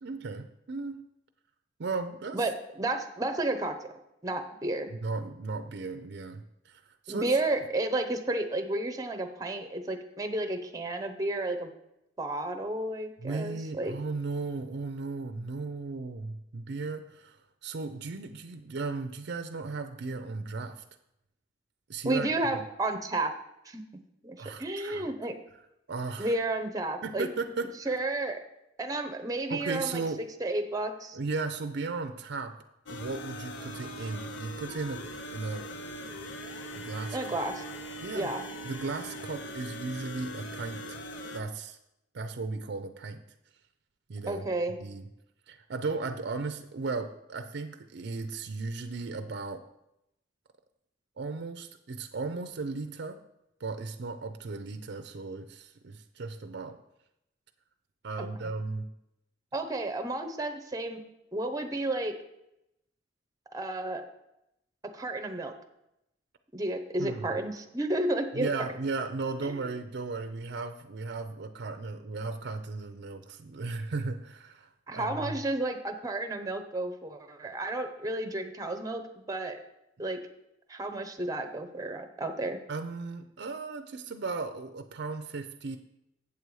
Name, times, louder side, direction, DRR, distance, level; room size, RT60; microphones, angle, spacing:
voice 1, 0.0-1.1 1.8-2.5 4.9-7.4 13.2-20.8 21.9-22.5 24.4-25.1 25.9-26.4 27.0-28.0 29.5-30.2 31.1-32.6 32.9-35.0 35.3-35.7 36.7-37.2 38.0-38.3 38.6-41.0 41.3-41.8 42.1-43.2 44.1-44.4 44.8-45.1 45.5-49.6 51.2-53.2 53.6-56.8 58.0-58.9 67.0-67.3 68.3-75.3 82.7-85.8, right 3 dB, 65° right, 7 dB, 0.5 m, -36 dB
voice 2, 2.3-3.8 4.2-4.9 7.1-11.7 12.2-13.9 22.0-23.3 23.6-23.8 24.2-25.3 26.2-27.3 27.9-28.4 28.8-31.2 37.1-37.6 38.1-38.4 44.3-44.8 59.5-61.0 61.3-62.1 63.5-64.0 64.9-65.5 66.5-68.5 69.6-69.7 74.9-79.6 80.0-80.2 80.7-82.6, right 2 dB, 20° right, 7 dB, 0.8 m, -32 dB
sound 1, 32.9-41.4, equal, 70° left, 0.7 m, -41 dB
8.2 x 6.8 x 4.7 m, 0.84 s
head